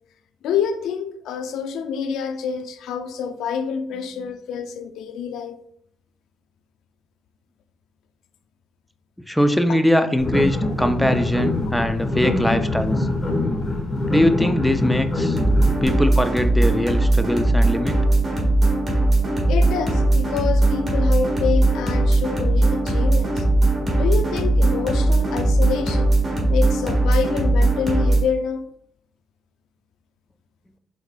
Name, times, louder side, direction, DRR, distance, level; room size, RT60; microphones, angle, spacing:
voice 1, 0.4-5.6 19.5-23.4 24.0-26.1 26.5-28.6, left 6 dB, 85° left, 0.4 m, -27 dB
voice 2, 9.3-13.1 14.1-15.4 15.8-18.0, left 1 dB, 5° left, 0.4 m, -21 dB
sound 1, 10.2-15.9, left 2 dB, 35° left, 1.3 m, -24 dB
sound 2, 15.3-28.2, right 2 dB, 30° right, 1.5 m, -19 dB
4.7 x 3.7 x 2.2 m
cardioid pair, 90°, 0 cm